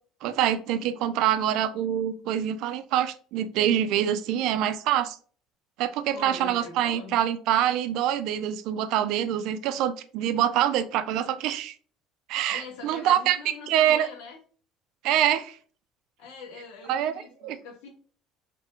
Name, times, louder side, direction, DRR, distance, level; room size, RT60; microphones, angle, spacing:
voice 1, 0.2-5.2 5.8-11.7 12.3-13.4 13.7-14.1 15.0-15.5 16.9-17.1 17.4-17.6, right 11 dB, 60° right, 11 dB, 0.4 m, -25 dB
voice 2, 6.1-7.2 12.5-14.4 16.2-17.9, left 4 dB, 70° left, 2 dB, 1.3 m, -42 dB
3.4 x 3.2 x 2.9 m, 0.43 s
cardioid pair, 160°, 0 cm